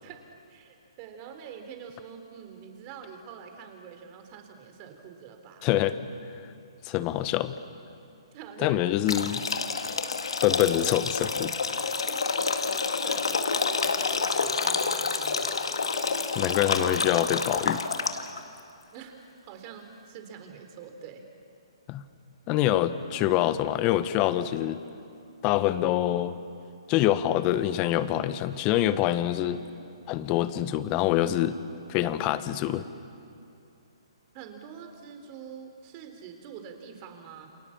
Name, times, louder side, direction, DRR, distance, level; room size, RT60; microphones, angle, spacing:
voice 1, 0.0-5.7 8.3-8.8 11.8-15.6 18.9-19.2 19.4-21.2 34.3-37.5, right 7 dB, 30° right, 5 dB, 3.7 m, -45 dB
voice 2, 5.6-6.0 6.8-7.5 8.6-9.4 10.4-11.5 16.3-17.8 21.9-22.0 22.5-24.8 25.4-26.3 26.9-29.6 30.1-31.6 31.9-32.8, left 13 dB, 30° left, 13 dB, 1.1 m, -25 dB
sound 1, 9.1-18.4, left 4 dB, 80° left, 2.0 m, -28 dB
29.0 x 27.5 x 7.3 m, 2.6 s
hypercardioid pair, 140°, 3 cm